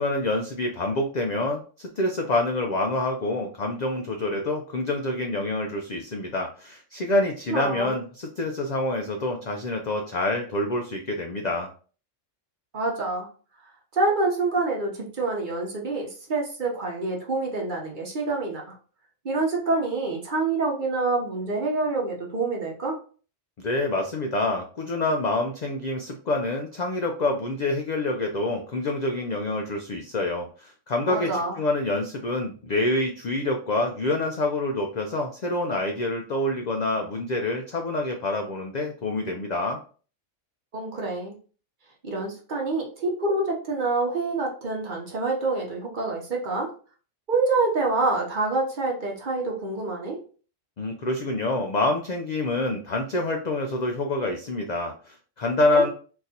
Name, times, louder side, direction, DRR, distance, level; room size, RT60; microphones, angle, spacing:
voice 1, 0.0-11.7 23.6-39.8 50.8-55.9, left 2 dB, 75° left, 3 dB, 0.4 m, -27 dB
voice 2, 7.5-7.9 12.7-13.3 13.9-18.7 19.2-23.0 31.1-31.5 40.7-41.3 42.0-46.7 47.3-50.2 55.7-55.8, right 3 dB, 45° right, 0 dB, 0.9 m, -26 dB
3.8 x 2.6 x 2.7 m, 0.40 s
omnidirectional pair, 1.3 m